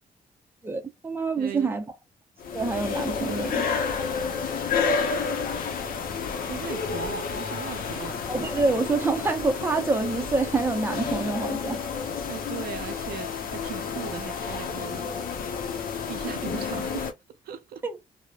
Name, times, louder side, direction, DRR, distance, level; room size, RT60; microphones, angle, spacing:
voice 1, 0.6-1.8 2.5-3.7 8.3-11.8 17.8-18.0, right 3 dB, 15° right, 0.5 m, -26 dB
voice 2, 1.3-1.7 6.5-8.2 12.3-15.1 16.1-17.1 17.4-17.8, right 9 dB, 85° right, 0.5 m, -38 dB
sound 1, 2.4-17.1, left 5 dB, 70° left, 0.6 m, -30 dB
2.9 x 2.0 x 2.3 m
cardioid pair, 140°, 15 cm